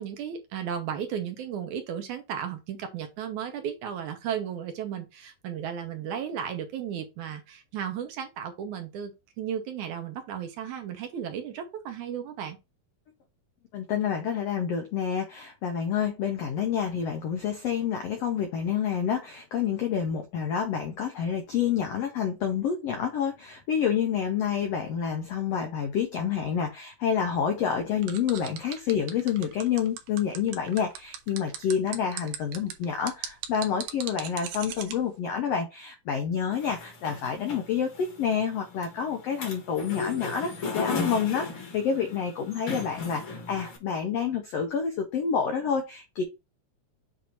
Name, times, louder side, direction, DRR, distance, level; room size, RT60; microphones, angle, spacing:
voice 1, 0.0-12.6, right 8 dB, 70° right, 2.1 m, -34 dB
voice 2, 13.7-46.2, left 7 dB, 80° left, 1.4 m, -28 dB
sound 1, 28.0-34.9, right 8 dB, 90° right, 2.6 m, -38 dB
sound 2, 36.5-43.8, left 4 dB, 45° left, 1.9 m, -36 dB
7.8 x 2.7 x 4.5 m
omnidirectional pair, 3.9 m